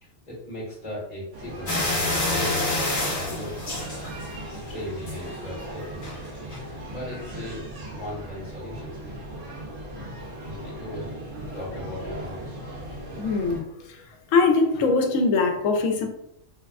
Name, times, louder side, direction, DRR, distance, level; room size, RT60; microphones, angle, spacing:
voice 1, 0.0-1.9 2.4-3.7 4.5-6.1 6.9-9.2 10.5-11.0 11.5-12.6, left 1 dB, 35° left, -8 dB, 1.1 m, -38 dB
sound 1, 1.3-13.6, right 1 dB, 70° right, 1.1 m, -38 dB
sound 2, 1.7-4.5 4.9-5.3 6.0-6.2 6.5-6.6, left 2 dB, 55° left, 1.3 m, -27 dB
voice 2, 13.2-14.0 14.3-16.1, left 4 dB, 80° left, 4 dB, 0.9 m, -22 dB
3.3 x 2.2 x 2.3 m, 0.77 s
omnidirectional pair, 1.3 m